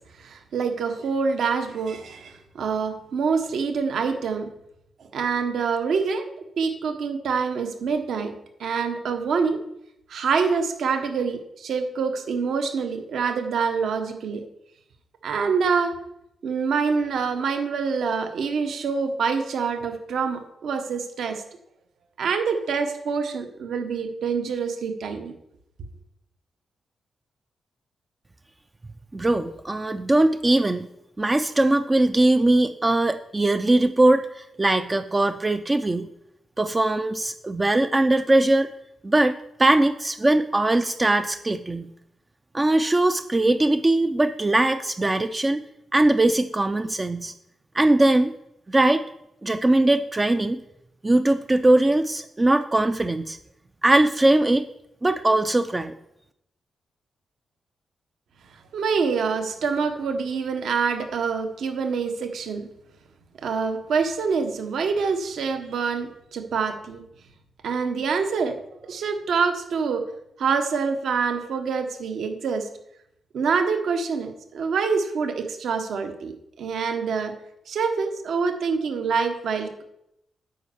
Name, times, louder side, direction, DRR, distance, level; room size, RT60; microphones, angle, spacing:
voice 1, 0.2-4.5 5.1-6.3 6.6-8.3 8.6-9.6 10.1-14.4 15.2-16.0 16.4-21.4 22.2-25.3 58.7-62.7 63.4-67.0 67.6-68.6 68.8-70.0 70.4-72.7 73.3-77.3 77.7-79.8, right 5 dB, 70° right, 6 dB, 1.1 m, -26 dB
voice 2, 29.1-30.9 31.2-36.1 36.6-38.7 39.0-41.9 42.5-45.6 45.9-47.3 47.7-48.3 48.7-49.1 49.4-50.6 51.0-53.4 53.8-54.7 55.0-55.9, right 2 dB, 15° right, 9 dB, 0.3 m, -20 dB
9.3 x 5.4 x 6.9 m, 0.80 s
wide cardioid pair, 175°, 0 cm